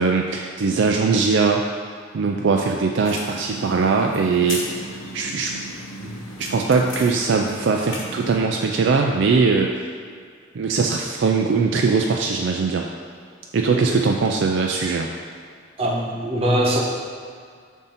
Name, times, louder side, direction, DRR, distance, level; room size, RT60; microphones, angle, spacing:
voice 1, 0.0-1.6 2.1-4.6 5.1-5.5 6.4-9.8 10.6-12.9 13.5-15.1, right 4 dB, 60° right, 1 dB, 0.4 m, -20 dB
sound 1, 3.1-8.4, left 1 dB, 85° left, 1.0 m, -36 dB
voice 2, 13.7-14.0 15.8-16.8, equal, 30° right, -3 dB, 0.9 m, -22 dB
7.2 x 2.8 x 5.7 m, 2.2 s
head